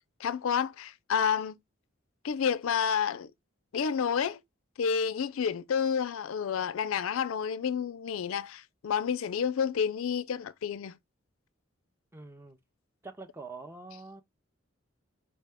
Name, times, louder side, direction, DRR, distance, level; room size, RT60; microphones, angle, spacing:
voice 1, 0.2-1.6 2.2-3.3 3.7-4.4 4.8-11.0, left 7 dB, 75° left, 0.4 m, -30 dB
voice 2, 12.1-12.6 13.0-14.2, right 3 dB, 10° right, 0.4 m, -45 dB
4.4 x 2.1 x 3.4 m
head